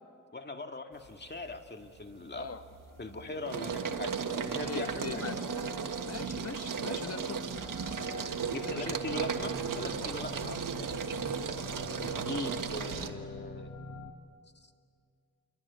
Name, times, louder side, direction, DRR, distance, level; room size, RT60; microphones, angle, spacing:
voice 1, 0.3-2.5 3.0-4.1 4.4-5.2 8.5-10.5 12.0-13.7 14.6-14.7, left 2 dB, 35° left, 5 dB, 2.1 m, -40 dB
sound 1, 1.1-1.6 2.0-13.1, right 6 dB, 85° right, 1.5 m, -36 dB
voice 2, 2.3-2.6 4.6-5.4 6.0-7.4 8.6-8.9 10.4-10.6, left 5 dB, 50° left, 8 dB, 1.4 m, -40 dB
sound 2, 2.8-14.1, left 4 dB, 85° left, 1.7 m, -47 dB
28.0 x 23.5 x 8.3 m, 2.3 s
cardioid pair, 70°, 31 cm